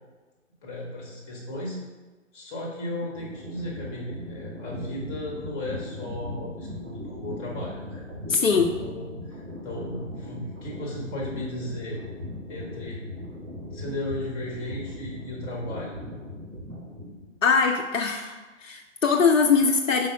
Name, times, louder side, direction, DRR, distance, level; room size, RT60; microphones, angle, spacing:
voice 1, 0.6-1.8 2.3-8.0 8.8-12.0 12.5-13.0 13.7-16.0, left 1 dB, 10° left, -4 dB, 0.8 m, -35 dB
sound 1, 3.1-17.4, left 1 dB, 85° right, 1.5 m, -39 dB
voice 2, 8.3-8.8 17.4-18.4 18.6-20.1, left 5 dB, 75° left, 2 dB, 0.6 m, -21 dB
5.1 x 4.1 x 4.9 m, 1.2 s
figure-of-eight pair, 135°, 39 cm